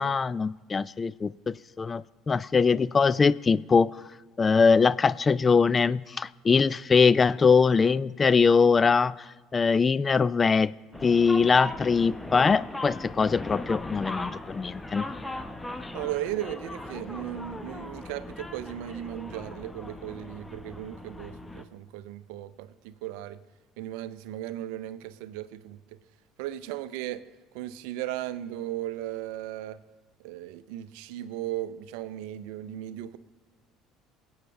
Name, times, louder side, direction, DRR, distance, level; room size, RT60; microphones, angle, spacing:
voice 1, 0.0-3.9 4.4-9.2 9.5-10.7 11.0-15.1, left 5 dB, 30° left, 0.3 m, -22 dB
sound 1, 10.9-21.6, left 2 dB, 15° left, 0.9 m, -38 dB
voice 2, 15.9-23.4 23.8-26.0 26.4-27.2 27.5-29.8 30.2-33.2, right 13 dB, 70° right, 0.5 m, -36 dB
23.5 x 8.6 x 3.4 m
hypercardioid pair, 65°, 0 cm